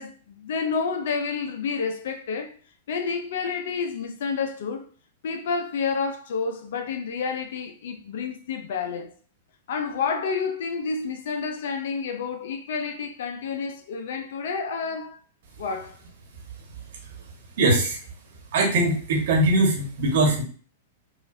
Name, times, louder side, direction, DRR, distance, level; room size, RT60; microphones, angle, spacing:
voice 1, 0.0-2.5 2.9-4.9 5.2-9.1 9.7-15.2 15.6-16.0, left 5 dB, 70° left, 0.6 m, -29 dB
voice 2, 17.6-18.0 18.5-20.4, right 2 dB, 65° right, 1.3 m, -21 dB
4.8 x 2.5 x 2.6 m
hypercardioid pair, 120°, 0 cm